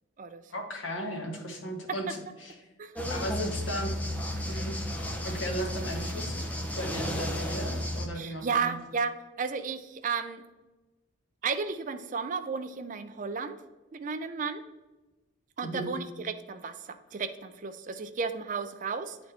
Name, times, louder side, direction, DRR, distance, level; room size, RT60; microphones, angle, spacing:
voice 1, 0.5-2.7 3.1-3.9 4.5-4.7 5.2-8.8 15.6-16.0, equal, 65° left, 1 dB, 1.3 m, -36 dB
sound 1, 2.9-8.1, equal, 5° left, 0.6 m, -33 dB
voice 2, 8.2-10.4 11.4-13.6 13.9-14.6 15.6-19.2, right 5 dB, 40° right, 10 dB, 0.4 m, -33 dB
9.2 x 3.9 x 3.4 m, 1.1 s
head